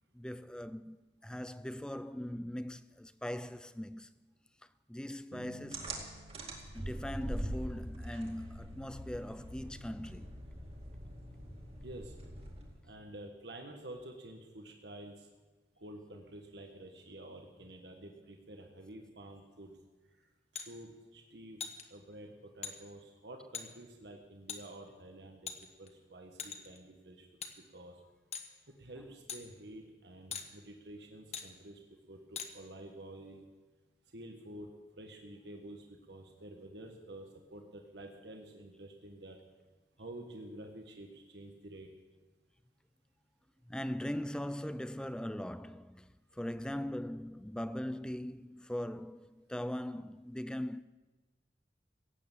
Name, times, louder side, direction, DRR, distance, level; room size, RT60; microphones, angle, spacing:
voice 1, 0.1-4.1 4.9-6.0 6.7-10.4 29.0-29.2 43.7-50.8, left 1 dB, 5° left, 0.3 m, -40 dB
sound 1, 5.3-8.3, right 1 dB, 50° right, 1.4 m, -56 dB
sound 2, 5.7-12.9, right 1 dB, 35° right, 2.2 m, -43 dB
voice 2, 11.8-12.1 12.8-15.3 15.8-19.7 20.5-25.5 25.8-27.2 27.7-28.0 28.8-31.8 32.1-33.4 34.1-34.7 35.0-39.4 40.0-41.9, right 1 dB, 75° right, 1.4 m, -49 dB
sound 3, 20.5-20.7 21.6-21.8 22.6-22.7 23.5-23.7 24.5-24.6 25.5-25.9 26.4-26.8 27.4-27.5 28.3-28.5 29.3-29.4 30.3-30.5 31.3-31.5 32.4-32.5, left 7 dB, 35° left, 1.1 m, -41 dB
16.5 x 8.6 x 7.3 m
head